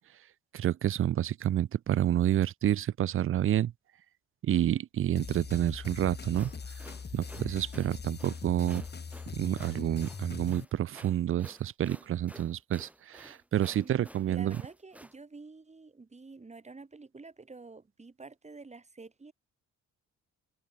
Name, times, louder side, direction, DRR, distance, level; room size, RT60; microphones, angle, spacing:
voice 1, 0.5-3.7 4.4-6.5 7.1-8.8 9.3-14.6, right 11 dB, 45° right, 0.5 m, -29 dB
sound 1, 5.2-10.6, left 5 dB, 35° left, 3.3 m, -41 dB
sound 2, 6.3-15.1, right 1 dB, 5° right, 5.6 m, -52 dB
voice 2, 13.8-19.3, right 3 dB, 20° right, 2.9 m, -49 dB
cardioid pair, 90°, 30 cm